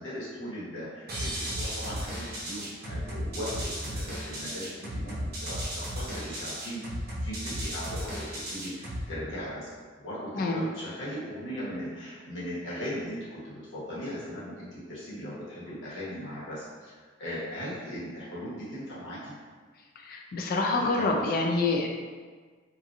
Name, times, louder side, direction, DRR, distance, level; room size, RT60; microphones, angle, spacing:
voice 1, 0.0-6.9 7.2-9.7 10.0-19.3 20.8-21.3, equal, 70° left, -9 dB, 1.1 m, -38 dB
sound 1, 1.1-9.1, equal, 50° right, 0.6 m, -35 dB
voice 2, 20.0-21.9, left 3 dB, 45° left, 1 dB, 0.3 m, -27 dB
2.8 x 2.5 x 2.5 m, 1.5 s
head